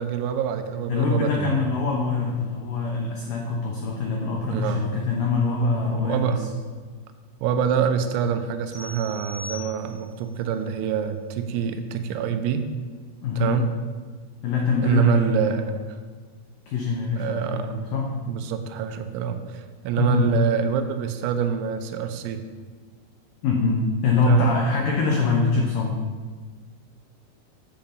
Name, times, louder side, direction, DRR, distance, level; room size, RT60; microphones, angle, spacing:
voice 1, 0.0-1.5 4.5-4.8 5.9-6.4 7.4-12.7 13.4-13.7 14.8-15.6 17.2-17.8 18.3-22.4 24.3-24.5, right 8 dB, 85° right, 8 dB, 3.1 m, -26 dB
voice 2, 0.9-6.5 13.2-13.5 14.4-15.6 16.7-18.1 20.0-20.3 23.4-26.0, left 4 dB, 90° left, -1 dB, 1.9 m, -24 dB
sound 1, 8.7-10.2, left 1 dB, 25° left, 1.0 m, -40 dB
8.7 x 5.9 x 6.7 m, 1.5 s
omnidirectional pair, 5.3 m